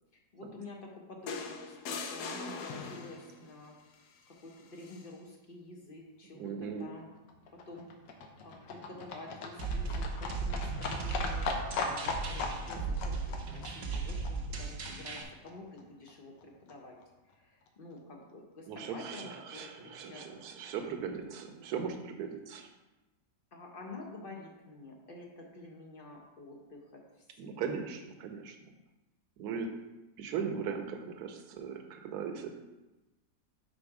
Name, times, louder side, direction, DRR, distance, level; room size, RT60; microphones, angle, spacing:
voice 1, 0.3-3.7 4.4-7.1 7.5-7.9 8.4-16.9 17.3-20.3 23.5-27.0 27.4-27.8, left 2 dB, 45° left, 0 dB, 0.7 m, -49 dB
sound 1, 1.3-3.4 4.8-5.0, left 4 dB, 75° left, 1.1 m, -40 dB
voice 2, 6.3-6.8 18.7-22.7 27.4-28.6 29.4-29.7 30.2-32.5, right 6 dB, 70° right, 4 dB, 1.2 m, -38 dB
Livestock farm animals working animals, 7.0-15.2 15.5-15.6 15.8-15.9 16.1-16.2 16.4-16.5 16.7-16.8 17.0-17.1 17.3-17.4 17.7-17.8, left 3 dB, 90° left, 1.4 m, -39 dB
sound 2, 9.6-15.2, right 4 dB, 55° right, 1.0 m, -36 dB
5.2 x 4.3 x 4.7 m, 1.1 s
omnidirectional pair, 1.8 m